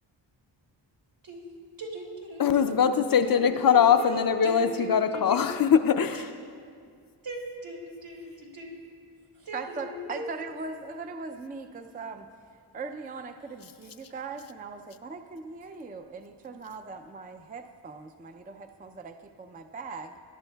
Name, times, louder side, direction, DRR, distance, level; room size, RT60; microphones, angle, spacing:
voice 1, 1.8-2.8 3.2-5.4 6.1-6.2 7.2-8.7 9.3-10.3, right 1 dB, 75° right, -2 dB, 2.4 m, -38 dB
voice 2, 2.4-6.3, left 7 dB, 50° left, 9 dB, 0.5 m, -22 dB
voice 3, 9.5-12.3 12.7-20.2, right 4 dB, 20° right, 6 dB, 0.4 m, -40 dB
18.5 x 11.0 x 2.3 m, 2.2 s
wide cardioid pair, 100°, 44 cm